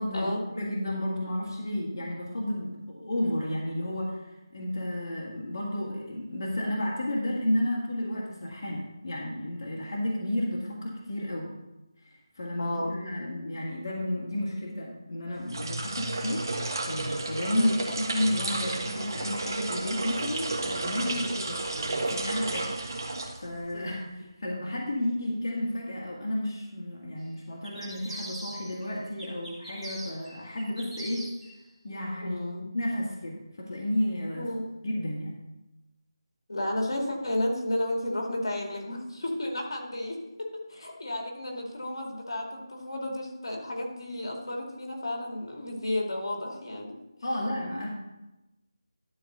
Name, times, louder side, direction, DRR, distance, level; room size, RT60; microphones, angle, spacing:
voice 1, 0.0-11.6 12.0-16.5 16.9-31.3 31.8-32.4 32.7-34.5 34.8-35.4 47.2-47.9, left 1 dB, 50° left, -4 dB, 1.8 m, -32 dB
voice 2, 12.6-13.0 17.5-17.7 21.3-21.6 23.7-24.1 32.2-32.7 34.4-34.7 36.5-47.0, left 1 dB, 70° left, 0 dB, 2.4 m, -32 dB
sound 1, 15.4-23.8, right 2 dB, 55° right, 1.6 m, -32 dB
sound 2, 27.6-28.8 29.2-31.5, right 1 dB, 5° right, 1.0 m, -42 dB
12.0 x 4.0 x 6.7 m, 1.0 s
figure-of-eight pair, 170°, 2 cm